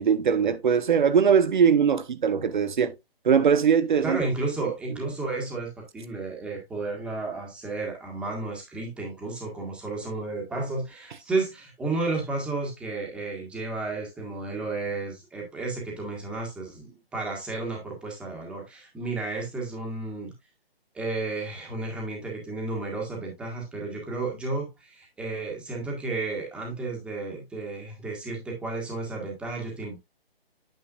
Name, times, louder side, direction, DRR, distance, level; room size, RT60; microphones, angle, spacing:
voice 1, 0.0-3.0 3.2-4.2, right 7 dB, 50° right, 1.1 m, -21 dB
voice 2, 4.0-20.3 20.9-30.0, right 3 dB, 5° right, 1.4 m, -32 dB
9.1 x 6.9 x 2.4 m
hypercardioid pair, 160°, 31 cm